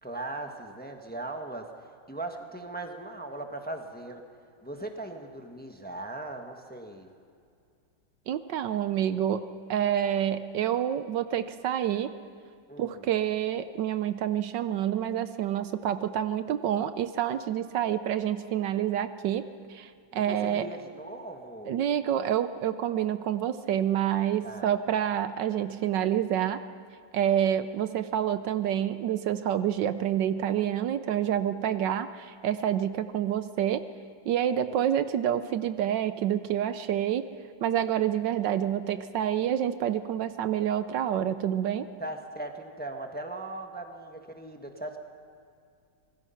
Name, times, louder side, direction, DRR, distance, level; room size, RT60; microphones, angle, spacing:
voice 1, 0.0-1.6 2.1-4.2 4.6-7.1 12.7-13.1 20.1-21.7 24.4-24.7 34.7-34.8 42.0-45.0, right 2 dB, 5° left, 4 dB, 1.1 m, -39 dB
voice 2, 8.3-9.4 9.7-12.1 12.8-19.4 19.7-20.7 21.7-26.6 27.1-33.8 34.2-37.2 37.6-41.9, right 10 dB, 70° right, 12 dB, 1.3 m, -28 dB
25.5 x 20.0 x 5.7 m, 2.4 s
omnidirectional pair, 2.1 m